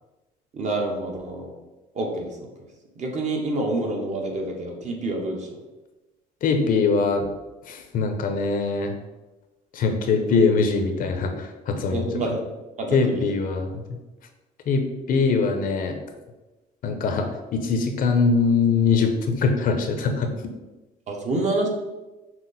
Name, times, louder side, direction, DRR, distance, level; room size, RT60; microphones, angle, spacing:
voice 1, 0.5-1.5 1.9-2.5 3.0-5.5 10.3-10.4 11.9-12.5 12.8-13.2 21.1-21.7, right 2 dB, 45° right, 1 dB, 0.9 m, -27 dB
voice 2, 6.4-7.3 7.7-8.9 9.7-12.0 12.9-13.8 14.7-16.0 16.8-20.3, left 4 dB, 55° left, 5 dB, 0.6 m, -22 dB
5.9 x 2.0 x 4.0 m, 1.1 s
cardioid pair, 110°, 17 cm